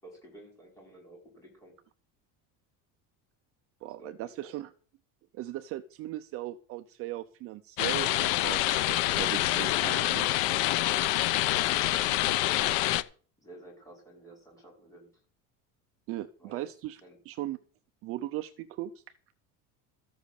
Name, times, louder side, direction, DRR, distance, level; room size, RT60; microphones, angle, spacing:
voice 1, 0.0-1.7 3.8-4.6 10.7-11.5 11.8-12.8 13.4-15.2 16.4-16.7 17.0-17.2, right 1 dB, 10° left, -1 dB, 5.6 m, -52 dB
voice 2, 3.8-4.7 5.3-10.3 16.1-17.0 17.3-17.6 18.0-19.0, right 15 dB, 40° right, 8 dB, 0.6 m, -38 dB
sound 1, 7.8-13.0, left 15 dB, 80° left, 0.9 m, -26 dB
14.0 x 7.8 x 6.5 m, 0.42 s
cardioid pair, 175°, 37 cm